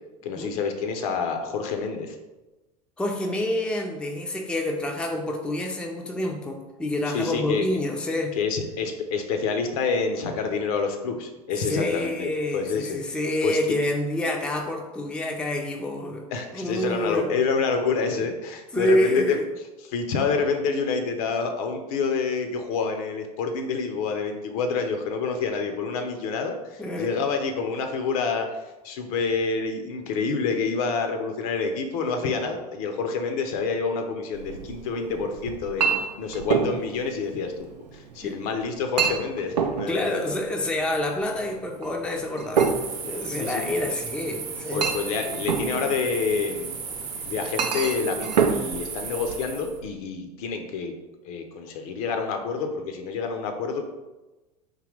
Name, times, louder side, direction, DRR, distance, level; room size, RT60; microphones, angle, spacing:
voice 1, 0.2-2.2 7.1-7.7 8.4-13.0 13.4-13.6 16.3-19.4 19.8-28.6 28.8-35.9 36.2-37.5 37.9-40.2 43.4-43.6 44.7-46.8 47.3-50.9 51.2-53.8, left 5 dB, 60° left, 5 dB, 0.6 m, -28 dB
voice 2, 3.0-8.3 11.6-16.3 16.5-17.3 18.7-19.4 26.8-27.1 38.2-38.3 39.9-42.7 43.0-44.9, left 1 dB, 5° left, 2 dB, 0.4 m, -27 dB
Chink clink, 34.3-49.9, right 6 dB, 85° right, 0.4 m, -29 dB
sound 1, 42.5-49.8, right 5 dB, 55° right, 0.8 m, -35 dB
3.8 x 2.8 x 3.2 m, 1.1 s
hypercardioid pair, 80°, 21 cm